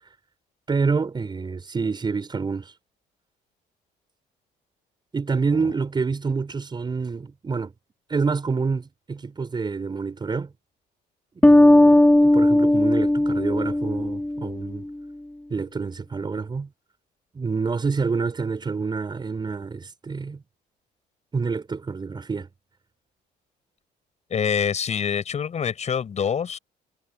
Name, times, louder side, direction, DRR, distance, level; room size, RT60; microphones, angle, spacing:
voice 1, 0.7-2.7 5.1-7.7 8.1-10.5 11.4-14.9 15.5-16.7 17.3-20.4 21.3-22.5, right 4 dB, 25° right, 5.3 m, -27 dB
sound 1, 11.4-14.8, left 1 dB, 5° left, 2.8 m, -17 dB
voice 2, 24.3-26.6, left 7 dB, 40° left, 7.9 m, -25 dB
cardioid pair, 110°, 17 cm